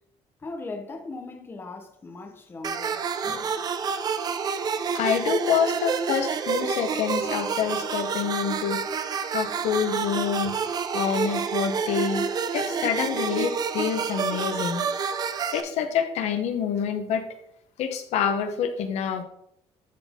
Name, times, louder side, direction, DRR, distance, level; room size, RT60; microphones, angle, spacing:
voice 1, 0.4-3.6, left 3 dB, 20° left, 0.9 m, -39 dB
sound 1, 2.6-15.6, right 6 dB, 35° right, 0.5 m, -28 dB
voice 2, 4.9-8.8 9.3-10.6 10.9-14.8 15.5-17.2 17.8-19.2, left 7 dB, 75° left, 1.0 m, -27 dB
12.0 x 4.2 x 3.6 m
cardioid pair, 170°, 11 cm